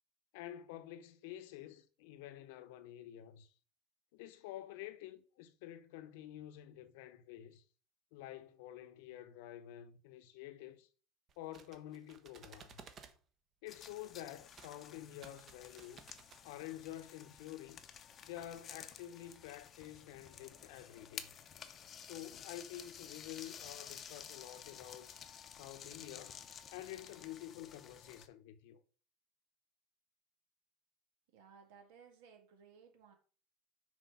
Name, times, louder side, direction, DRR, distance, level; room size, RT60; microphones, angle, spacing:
voice 1, 0.3-3.5 4.1-7.6 8.1-10.9 11.4-12.9 13.6-16.0 16.4-17.8 18.2-21.3 22.0-25.1 25.5-26.4 26.7-28.8, left 13 dB, 85° left, 0.8 m, -49 dB
sound 1, 11.3-13.2 14.5-14.8 15.1-16.4, right 6 dB, 30° right, 0.8 m, -57 dB
sound 2, 13.7-28.3, left 8 dB, 30° left, 0.6 m, -53 dB
voice 2, 31.3-33.1, right 6 dB, 80° right, 1.9 m, -60 dB
6.2 x 4.4 x 5.5 m
cardioid pair, 160°, 0 cm